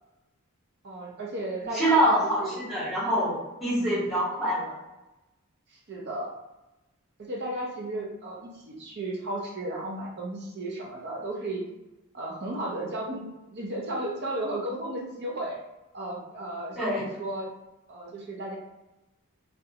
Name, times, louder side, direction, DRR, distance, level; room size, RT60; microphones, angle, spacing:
voice 1, 0.8-2.6 3.8-4.1 5.7-6.3 7.2-11.6 12.1-15.6 15.9-17.5 17.9-18.6, right 1 dB, 50° right, -1 dB, 0.7 m, -34 dB
voice 2, 1.7-4.7 16.8-17.0, equal, ahead, -12 dB, 1.1 m, -25 dB
2.4 x 2.2 x 2.8 m, 1.0 s
head